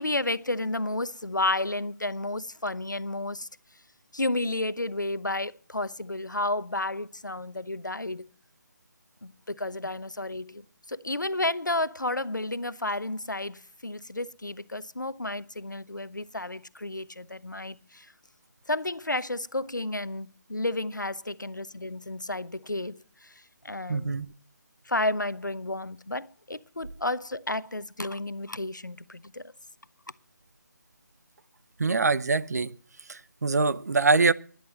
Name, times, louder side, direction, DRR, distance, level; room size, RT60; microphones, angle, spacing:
voice 1, 0.0-3.5 4.1-8.3 9.2-10.6 10.9-18.1 18.7-23.3 23.6-24.1 24.9-29.4, left 2 dB, 85° left, 0.9 m, -31 dB
voice 2, 23.9-24.3 31.8-32.7 33.1-34.3, right 3 dB, 60° right, 0.8 m, -24 dB
12.0 x 10.5 x 7.7 m
figure-of-eight pair, 150°, 10 cm